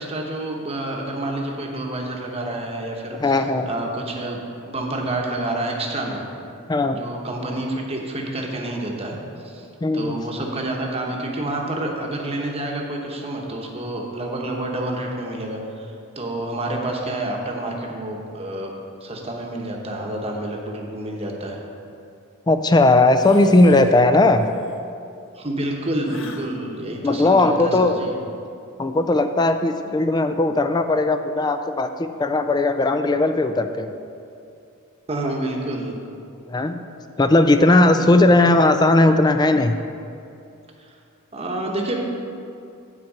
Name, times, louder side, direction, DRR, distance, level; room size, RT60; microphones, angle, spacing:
voice 1, 0.0-3.3 3.7-4.4 4.7-6.3 6.9-9.2 9.4-9.7 9.9-15.9 16.2-18.7 19.0-21.6 25.3-28.2 35.1-36.0 38.0-38.2 40.8-40.9 41.3-42.0, right 1 dB, 30° right, 0 dB, 1.0 m, -28 dB
voice 2, 3.2-3.7 6.7-7.0 9.8-10.2 22.5-24.5 27.0-28.0 28.8-33.9 36.5-36.8 37.2-39.8, left 2 dB, 20° left, 8 dB, 0.3 m, -17 dB
sound 1, 23.1-24.0 24.3-24.8 26.0-26.5, left 2 dB, 60° left, 0.7 m, -38 dB
8.9 x 4.5 x 7.3 m, 2.6 s
head